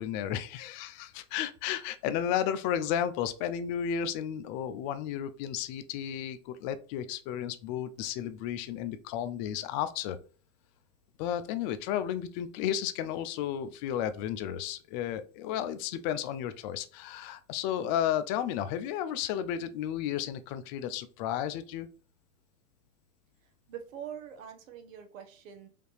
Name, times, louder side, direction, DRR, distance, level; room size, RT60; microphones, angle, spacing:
voice 1, 0.0-10.2 11.2-21.9, left 10 dB, 35° left, 11 dB, 0.4 m, -33 dB
voice 2, 23.7-25.7, right 9 dB, 65° right, 6 dB, 1.2 m, -44 dB
5.0 x 2.7 x 3.2 m, 0.39 s
hypercardioid pair, 130°, 42 cm